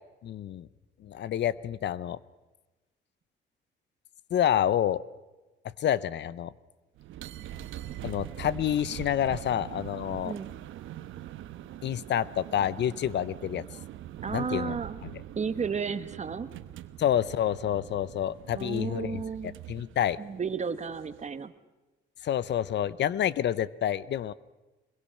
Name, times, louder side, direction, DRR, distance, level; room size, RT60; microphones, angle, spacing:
voice 1, 0.2-0.7 1.0-2.2 4.3-5.0 5.8-6.5 8.0-10.3 11.8-13.6 14.3-14.8 15.0-15.1 17.0-19.2 19.7-20.2 22.2-24.3, left 10 dB, 60° left, 18 dB, 0.7 m, -28 dB
sound 1, 7.0-21.4, right 12 dB, 85° right, 1.0 m, -43 dB
voice 2, 14.2-15.0 15.3-16.5 18.6-19.6 20.2-21.5, right 5 dB, 35° right, 11 dB, 1.2 m, -33 dB
23.0 x 21.5 x 6.5 m, 1.1 s
cardioid pair, 90°, 20 cm